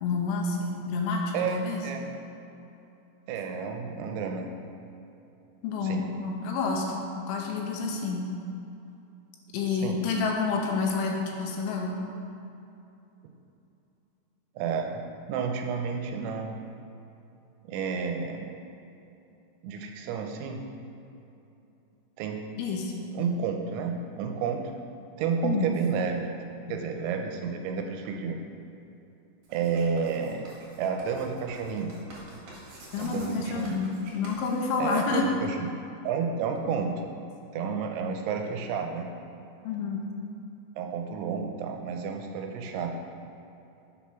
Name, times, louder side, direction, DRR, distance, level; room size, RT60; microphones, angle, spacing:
voice 1, 0.0-1.2 1.5-1.8 5.6-7.0 7.3-8.3 9.5-12.0 22.6-22.9 25.4-25.7 26.7-26.8 32.9-35.3 39.6-40.0, left 4 dB, 90° left, 0 dB, 3.3 m, -29 dB
voice 2, 1.3-2.0 3.3-4.5 5.8-6.0 9.7-10.0 14.6-15.0 15.3-16.6 17.6-18.5 19.6-20.6 22.2-22.4 23.1-24.6 25.2-26.2 26.7-28.4 29.5-30.5 30.8-31.9 33.0-33.8 34.8-35.7 36.0-37.0 37.5-39.1 40.8-43.0, right 6 dB, 90° right, 3 dB, 3.0 m, -31 dB
Writing, 29.4-35.3, right 2 dB, 55° right, 2.8 m, -48 dB
7.6 x 4.3 x 5.8 m, 2.8 s
omnidirectional pair, 5.2 m